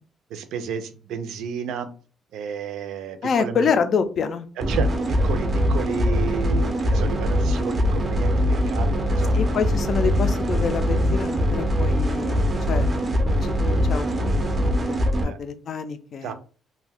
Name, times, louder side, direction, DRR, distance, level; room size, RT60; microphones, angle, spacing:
voice 1, 0.3-1.9 2.3-3.7 4.6-9.4 15.2-15.4 16.2-16.3, right 7 dB, 85° right, 9 dB, 0.4 m, -32 dB
voice 2, 3.2-4.5 9.3-15.0 15.2-16.3, left 6 dB, 45° left, 9 dB, 0.3 m, -27 dB
sound 1, 4.6-15.2, equal, 25° right, 0.4 m, -22 dB
2.5 x 2.1 x 3.4 m, 0.38 s
cardioid pair, 165°, 0 cm